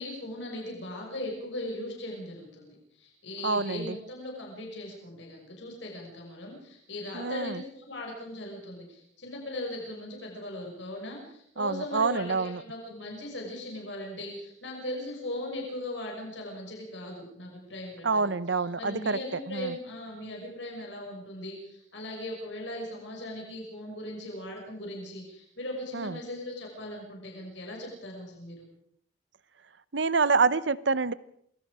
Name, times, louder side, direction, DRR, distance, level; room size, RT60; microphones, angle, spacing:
voice 1, 0.0-18.3 18.8-28.7, left 1 dB, 70° left, 0 dB, 5.9 m, -39 dB
voice 2, 3.4-4.0 7.1-7.6 11.6-12.6 18.0-19.2 19.5-19.7 25.9-26.2 29.9-31.1, right 4 dB, 70° right, 17 dB, 0.9 m, -27 dB
28.0 x 21.0 x 4.9 m, 0.66 s
head